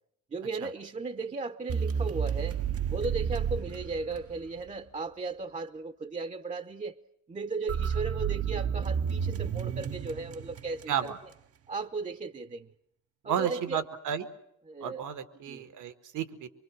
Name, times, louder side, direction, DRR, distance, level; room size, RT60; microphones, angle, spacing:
voice 1, 0.3-2.6 2.9-7.0 7.3-11.1 11.7-12.7 13.2-13.8 14.7-15.0 15.5-15.6, right 3 dB, 25° right, 11 dB, 0.8 m, -36 dB
sound 1, 1.7-4.7 7.7-11.1, right 7 dB, 50° right, 0.9 m, -31 dB
voice 2, 10.9-11.2 13.2-14.3 14.8-16.5, right 8 dB, 80° right, 10 dB, 1.7 m, -32 dB
24.5 x 24.0 x 6.3 m, 0.78 s
cardioid pair, 90°, 30 cm